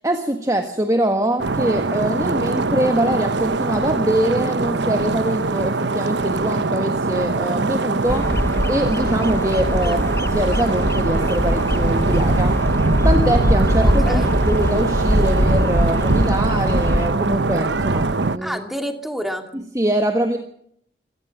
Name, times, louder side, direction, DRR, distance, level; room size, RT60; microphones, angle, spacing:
voice 1, 0.0-8.3 8.6-10.0 10.3-12.8 13.0-18.6 19.5-20.4, right 1 dB, 20° right, 6 dB, 1.5 m, -23 dB
sound 1, 1.4-18.4, right 3 dB, 75° right, 0.9 m, -22 dB
Bird vocalization bird call bird song, 8.1-17.1, equal, 15° left, 1.2 m, -22 dB
voice 2, 13.8-14.4 18.4-19.4, equal, ahead, 5 dB, 2.5 m, -29 dB
25.5 x 17.5 x 6.0 m, 0.70 s
head